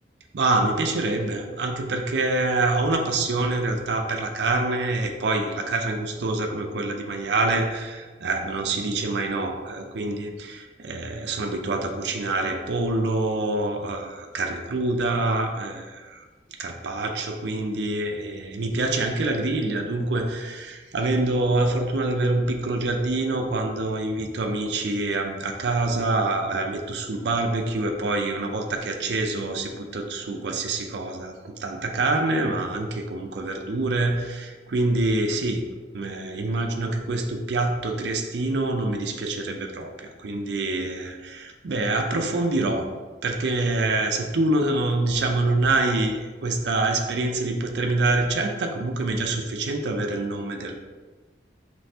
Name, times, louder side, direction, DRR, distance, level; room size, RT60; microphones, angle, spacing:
voice 1, 0.3-16.2 16.6-35.7 35.9-42.9 43.2-50.7, right 2 dB, 75° right, 3 dB, 0.5 m, -26 dB
5.2 x 3.3 x 2.8 m, 1.3 s
head